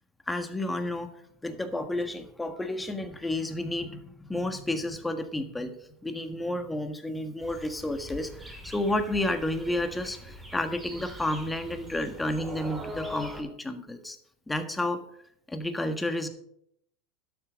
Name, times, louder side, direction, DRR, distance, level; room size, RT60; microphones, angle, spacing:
voice 1, 0.3-1.1 1.4-5.7 6.0-14.2 14.5-15.0 15.5-16.3, left 1 dB, 10° left, 8 dB, 1.5 m, -31 dB
sound 1, 7.4-13.4, equal, 5° right, 2.5 m, -42 dB
12.0 x 7.8 x 5.1 m, 0.69 s
hypercardioid pair, 105°, 0 cm